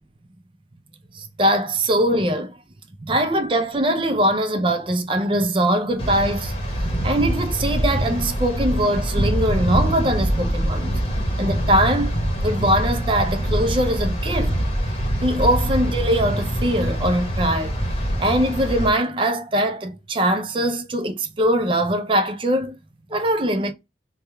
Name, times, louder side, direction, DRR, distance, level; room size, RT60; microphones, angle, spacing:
voice 1, 1.1-2.5 3.1-6.5 7.0-11.0 11.4-12.2 12.4-14.5 15.2-17.8 18.2-22.8 23.1-23.7, right 1 dB, 30° right, 0.5 m, -22 dB
sound 1, 6.0-18.9, equal, 30° left, 0.9 m, -24 dB
3.4 x 2.2 x 4.3 m
head